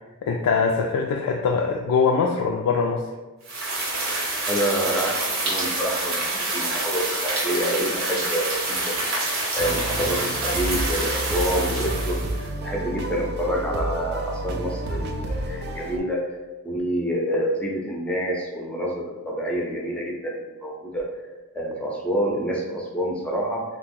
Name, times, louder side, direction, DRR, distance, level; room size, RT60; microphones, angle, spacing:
voice 1, 0.2-3.1, left 5 dB, 80° left, 1 dB, 0.3 m, -22 dB
sound 1, 3.5-12.5, right 2 dB, 65° right, 0.9 m, -27 dB
voice 2, 4.5-16.4 16.6-21.1 21.5-23.6, equal, 5° left, -2 dB, 0.5 m, -28 dB
sound 2, 9.6-16.0, right 1 dB, 50° right, 0.3 m, -30 dB
2.8 x 2.4 x 3.6 m, 1.2 s
head